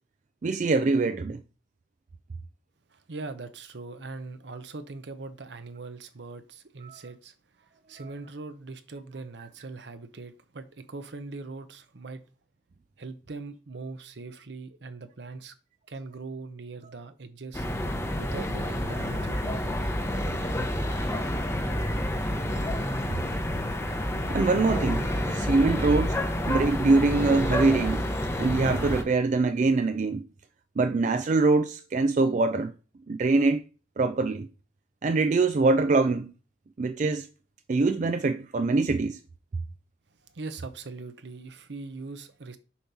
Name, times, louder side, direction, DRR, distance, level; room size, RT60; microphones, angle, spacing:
voice 1, 0.4-1.4 6.8-7.0 8.0-8.1 24.3-25.0 25.3-26.2 26.5-28.0 28.4-30.2 30.8-32.7 33.1-33.6 34.0-34.5 35.0-36.3 36.8-37.3 37.7-39.2, right 3 dB, 40° right, 0.4 m, -24 dB
voice 2, 2.9-7.3 7.9-12.2 13.0-15.5 15.9-17.7 18.2-19.7 40.3-42.6, right 3 dB, 70° right, 0.8 m, -41 dB
sound 1, 17.5-29.0, left 1 dB, 15° left, 0.8 m, -29 dB
7.0 x 3.1 x 5.4 m
head